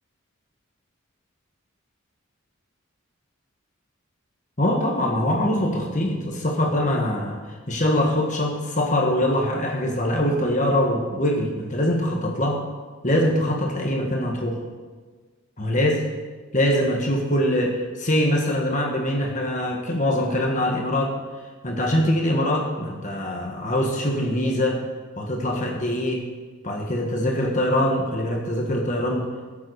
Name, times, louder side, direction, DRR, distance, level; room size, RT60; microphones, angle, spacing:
voice 1, 4.6-7.4 7.7-12.6 13.0-14.6 15.6-16.1 16.5-21.2 21.6-24.8 25.2-26.2 26.6-29.3, left 1 dB, 35° left, 0 dB, 1.6 m, -23 dB
18.0 x 7.6 x 4.9 m, 1.4 s
head